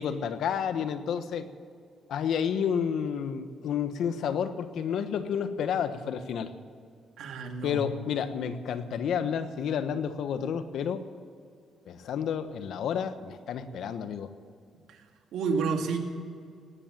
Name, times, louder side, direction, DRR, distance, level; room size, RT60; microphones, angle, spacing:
voice 1, 0.0-1.5 2.1-6.5 7.6-11.0 11.9-14.3, left 7 dB, 75° left, 10 dB, 1.2 m, -30 dB
voice 2, 7.2-7.8 14.9-15.0 15.3-16.0, right 5 dB, 80° right, 4 dB, 2.2 m, -30 dB
18.5 x 10.0 x 7.4 m, 2.3 s
cardioid pair, 90°, 0 cm